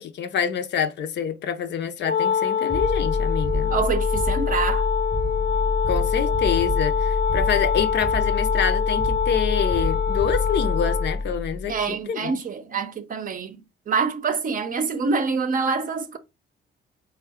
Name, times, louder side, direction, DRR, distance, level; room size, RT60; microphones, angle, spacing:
voice 1, 0.0-3.8 5.9-12.3, left 8 dB, 65° left, 0.6 m, -27 dB
Wind instrument woodwind instrument, 2.0-11.2, left 7 dB, 85° left, 0.9 m, -25 dB
sound 1, 2.7-11.8, left 2 dB, ahead, 0.4 m, -26 dB
voice 2, 3.7-4.8 11.7-16.2, right 5 dB, 45° right, 0.6 m, -26 dB
3.7 x 2.3 x 3.5 m
cardioid pair, 90°, 20 cm